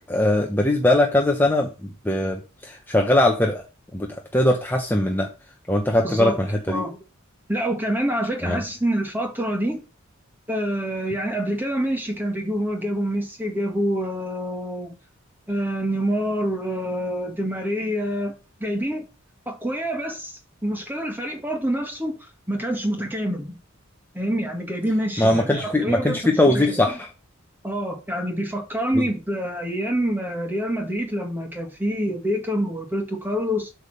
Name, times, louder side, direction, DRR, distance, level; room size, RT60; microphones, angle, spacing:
voice 1, 0.1-3.6 3.9-5.3 5.7-6.9 8.4-8.6 25.2-27.1 28.9-29.0, left 1 dB, 10° left, 0.9 m, -21 dB
voice 2, 6.0-7.0 7.5-9.8 10.5-15.0 15.5-18.3 18.6-19.1 19.5-23.6 24.1-26.8 27.6-33.7, equal, 10° right, 1.8 m, -26 dB
8.2 x 3.6 x 6.6 m
head